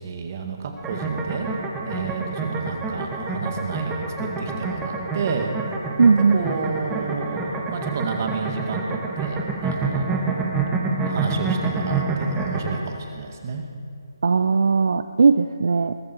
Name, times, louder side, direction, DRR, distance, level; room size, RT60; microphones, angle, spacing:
voice 1, 0.0-1.5 1.8-5.5 6.2-10.6 11.0-13.6, right 5 dB, 40° right, 4 dB, 2.0 m, -31 dB
sound 1, 0.8-12.8, right 3 dB, 10° right, 1.5 m, -27 dB
voice 2, 6.0-6.4 14.2-16.0, right 4 dB, 65° right, 10 dB, 0.5 m, -18 dB
21.0 x 13.0 x 4.5 m, 2.3 s
figure-of-eight pair, 150°, 2 cm